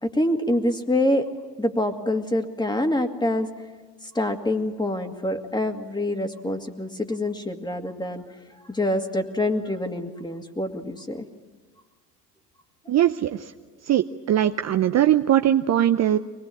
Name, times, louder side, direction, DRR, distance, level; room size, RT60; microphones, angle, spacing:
voice 1, 0.0-1.3 1.6-3.5 4.0-8.2 8.6-11.3, left 1 dB, 10° left, 6 dB, 2.2 m, -26 dB
voice 2, 12.9-13.4 13.9-16.2, right 11 dB, 35° right, 8 dB, 0.8 m, -20 dB
24.0 x 19.5 x 8.6 m, 1.4 s
hypercardioid pair, 75°, 46 cm